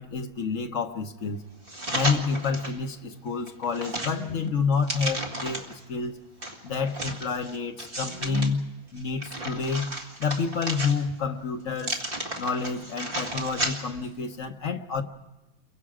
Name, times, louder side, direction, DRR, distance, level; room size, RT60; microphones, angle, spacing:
voice 1, 0.0-1.4 1.9-6.2 6.6-8.6 8.9-9.9 10.2-12.0 12.4-15.0, left 5 dB, 50° left, 1.1 m, -29 dB
sound 1, 1.7-2.8 3.3-5.8 6.4-8.5 9.0-11.3 11.8-14.1 14.4-14.5, right 1 dB, 25° right, 2.0 m, -33 dB
29.5 x 23.5 x 4.9 m
omnidirectional pair, 2.2 m